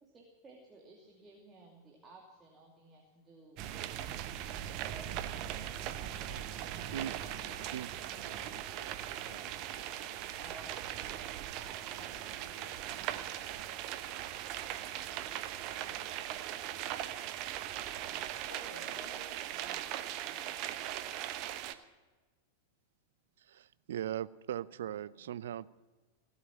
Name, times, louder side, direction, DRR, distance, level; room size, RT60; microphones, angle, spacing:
voice 1, 0.0-4.1 4.7-6.2 10.4-11.8 12.3-12.6 18.7-20.7, right 2 dB, 20° right, -2 dB, 2.7 m, -56 dB
sound 1, 3.6-21.7, right 12 dB, 40° right, 0.9 m, -40 dB
voice 2, 6.0-10.6 11.9-14.2 14.6-16.9 18.1-19.4 24.5-25.6, left 1 dB, 85° left, 1 dB, 2.9 m, -58 dB
voice 3, 23.4-25.7, right 11 dB, 60° right, 18 dB, 0.5 m, -39 dB
18.0 x 8.3 x 9.0 m, 1.3 s
figure-of-eight pair, 90°, 0 cm